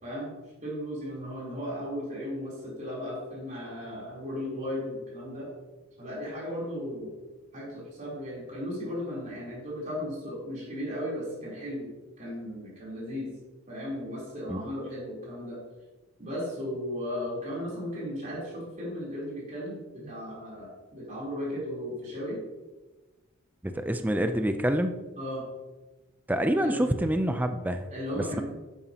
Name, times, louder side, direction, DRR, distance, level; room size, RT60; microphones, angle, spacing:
voice 1, 0.0-0.3 0.6-5.5 6.0-7.2 7.5-11.9 12.2-13.3 13.7-15.6 16.2-22.4 25.2-25.5 26.6-26.8 27.9-28.4, equal, 35° right, -6 dB, 3.7 m, -36 dB
voice 2, 23.6-24.9 26.3-27.8, right 1 dB, 10° right, 7 dB, 0.5 m, -26 dB
12.5 x 9.1 x 2.9 m, 1.2 s
head